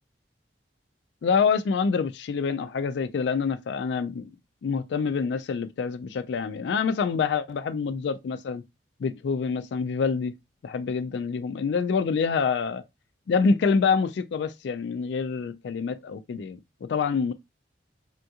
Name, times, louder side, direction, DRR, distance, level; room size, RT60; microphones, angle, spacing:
voice 1, 1.2-4.3 4.6-8.6 9.0-10.3 10.6-12.8 13.3-17.3, left 5 dB, 65° left, 0.3 m, -26 dB
3.5 x 2.7 x 2.2 m
head